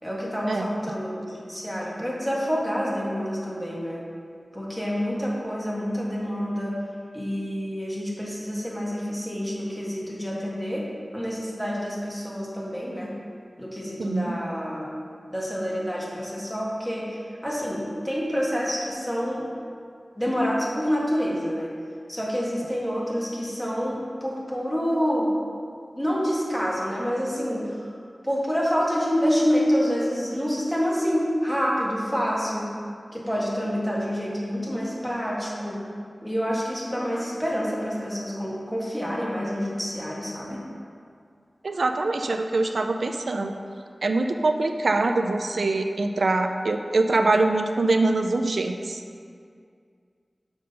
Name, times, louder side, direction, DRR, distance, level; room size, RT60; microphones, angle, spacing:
voice 1, 0.0-4.0 4.5-6.7 7.1-10.8 11.1-13.1 13.6-14.9 15.3-17.1 17.4-19.5 20.2-21.7 22.1-25.3 26.0-27.7 28.2-32.7 33.1-35.8 36.2-40.6, equal, 10° left, -5 dB, 1.9 m, -27 dB
voice 2, 14.0-14.4 41.6-43.5 44.0-49.0, right 2 dB, 85° right, 6 dB, 0.4 m, -24 dB
6.4 x 6.0 x 5.4 m, 2.2 s
wide cardioid pair, 75°, 0 cm